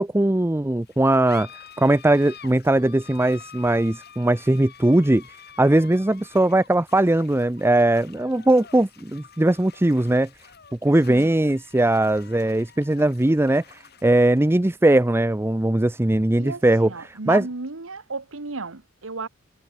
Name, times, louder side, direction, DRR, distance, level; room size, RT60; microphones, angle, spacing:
voice 1, 0.0-1.5 1.8-10.3 10.8-17.5, right 1 dB, 10° right, 0.6 m, -20 dB
sound 1, 0.8-17.8, left 7 dB, 55° left, 7.6 m, -48 dB
voice 2, 16.4-19.3, right 3 dB, 75° right, 1.4 m, -34 dB
head